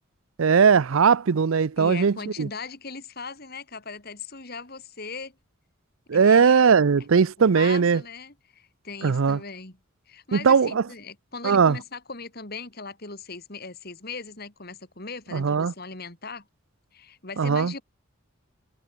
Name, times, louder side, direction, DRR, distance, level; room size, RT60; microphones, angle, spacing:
voice 1, 0.4-2.5 6.1-8.0 9.0-9.4 10.3-10.8 11.4-11.8 15.3-15.7 17.4-17.7, right 6 dB, 80° right, 0.5 m, -19 dB
voice 2, 1.8-5.3 6.1-6.6 7.4-9.8 10.1-16.5 16.9-17.8, left 4 dB, 50° left, 3.6 m, -39 dB
head